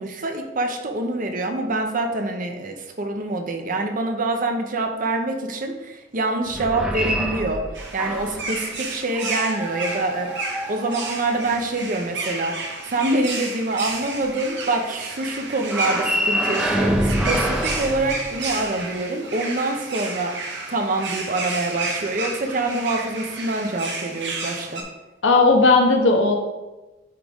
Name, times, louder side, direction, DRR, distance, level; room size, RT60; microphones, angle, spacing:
voice 1, 0.0-7.6 7.9-24.8, right 2 dB, 45° right, 4 dB, 0.7 m, -26 dB
sound 1, 6.5-8.5 9.1-11.5 15.6-18.8, equal, 5° right, 0.5 m, -26 dB
sound 2, 7.7-24.8, right 3 dB, 65° right, 1.1 m, -32 dB
voice 2, 25.2-26.3, left 3 dB, 65° left, 3 dB, 1.0 m, -16 dB
9.0 x 3.6 x 3.5 m, 1.1 s
head